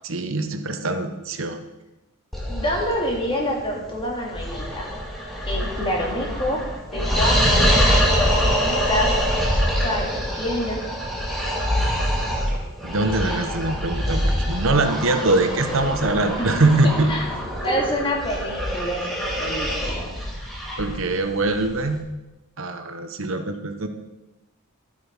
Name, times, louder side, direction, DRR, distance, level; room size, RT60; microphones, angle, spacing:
voice 1, 0.0-1.6 12.1-12.2 12.8-17.1 20.8-22.1 22.6-23.9, right 2 dB, 65° right, 7 dB, 1.0 m, -23 dB
sound 1, 2.3-22.0, equal, ahead, 2.1 m, -25 dB
voice 2, 2.5-4.9 5.5-6.6 6.9-7.7 8.1-9.1 9.5-10.8 16.4-17.2 17.6-20.1, equal, 25° left, -1 dB, 2.5 m, -27 dB
12.5 x 8.5 x 5.4 m, 1.0 s
head